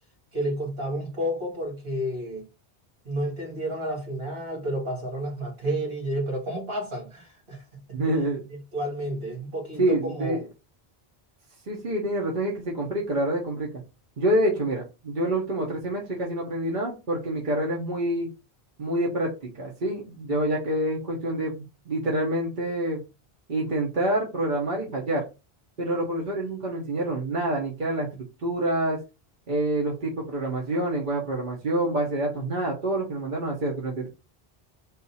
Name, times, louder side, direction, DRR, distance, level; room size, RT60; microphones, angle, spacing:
voice 1, 0.3-2.5 3.1-7.6 7.9-8.0 8.5-10.4, right 1 dB, 65° right, 0 dB, 2.1 m, -31 dB
voice 2, 7.9-8.4 9.8-10.4 11.7-13.7 14.2-18.3 18.8-23.0 23.5-25.2 25.8-29.0 29.5-34.1, right 1 dB, 50° right, -3 dB, 1.2 m, -27 dB
3.9 x 2.6 x 4.1 m, 0.29 s
omnidirectional pair, 1.1 m